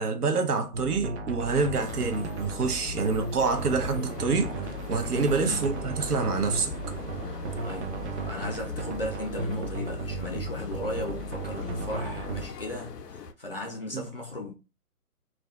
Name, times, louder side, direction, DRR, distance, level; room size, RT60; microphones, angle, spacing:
voice 1, 0.0-6.7 13.9-14.0, right 4 dB, 75° right, 0.9 m, -27 dB
sound 1, 0.7-12.5, right 2 dB, 50° right, 0.6 m, -35 dB
sound 2, 1.7-13.3, left 4 dB, 90° left, 0.6 m, -42 dB
sound 3, 3.5-8.5, right 1 dB, 90° right, 1.2 m, -44 dB
voice 2, 7.6-14.5, left 1 dB, 40° left, 0.4 m, -36 dB
2.5 x 2.2 x 2.3 m
hypercardioid pair, 155°, 46 cm